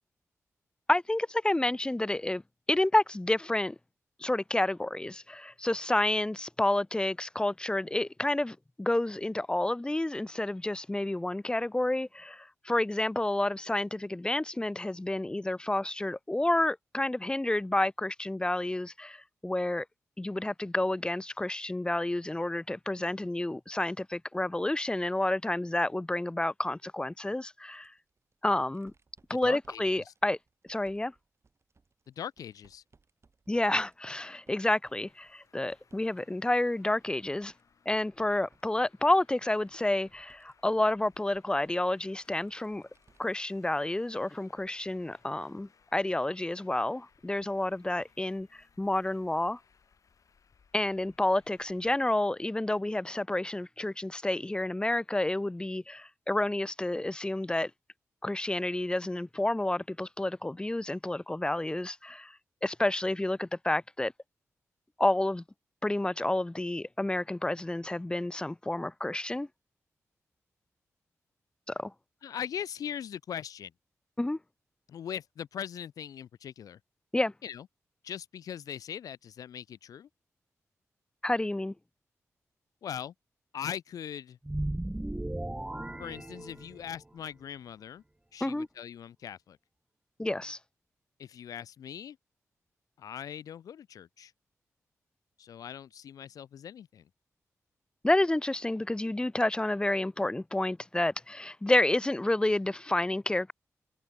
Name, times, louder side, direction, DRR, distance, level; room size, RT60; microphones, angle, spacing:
voice 1, 0.9-2.4 2.7-3.8 4.2-19.9 20.2-27.9 28.4-28.9 29.3-30.4 30.7-31.1 33.5-37.5 37.9-42.8 43.2-49.6 50.7-57.7 58.2-64.1 65.0-65.4 65.8-69.5 71.7-71.9 74.2-74.4 77.1-77.3 81.2-81.7 88.4-88.7 90.2-90.6 98.0-103.5, left 1 dB, 15° left, 0.5 m, -30 dB
sound 1, 27.7-36.2 36.5-43.5 43.9-44.0 45.2-45.3, right 4 dB, 50° right, 5.3 m, -68 dB
voice 2, 29.3-30.1 32.1-32.8 72.2-73.7 74.9-76.8 77.4-77.7 78.0-80.1 82.8-83.1 83.5-84.4 86.0-88.0 88.3-89.6 91.2-92.2 93.0-94.3 95.4-97.0, left 9 dB, 85° left, 1.1 m, -40 dB
Traffic noise roadway noise, 34.8-52.0, left 6 dB, 65° left, 4.9 m, -66 dB
sound 2, 84.4-87.0, right 1 dB, 15° right, 1.3 m, -36 dB
supercardioid pair, 45°, 6 cm